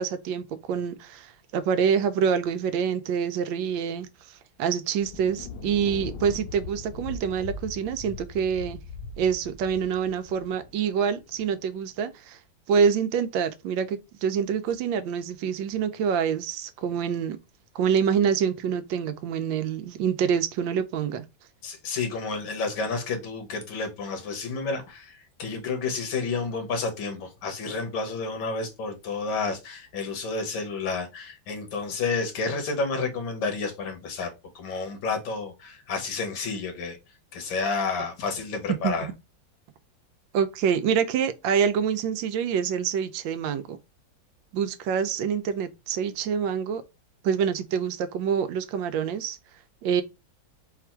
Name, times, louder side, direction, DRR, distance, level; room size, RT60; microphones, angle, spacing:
voice 1, 0.0-4.1 4.6-8.8 9.2-12.4 12.7-17.4 17.7-21.3 38.8-39.1 40.3-43.8 44.5-46.8 47.2-49.4 49.8-50.0, right 7 dB, 90° right, 1.3 m, -26 dB
Thunder, 4.9-11.6, left 4 dB, 65° left, 1.0 m, -40 dB
voice 2, 21.6-37.0 37.3-39.1, left 4 dB, 85° left, 1.9 m, -30 dB
4.3 x 2.4 x 4.4 m
omnidirectional pair, 2.0 m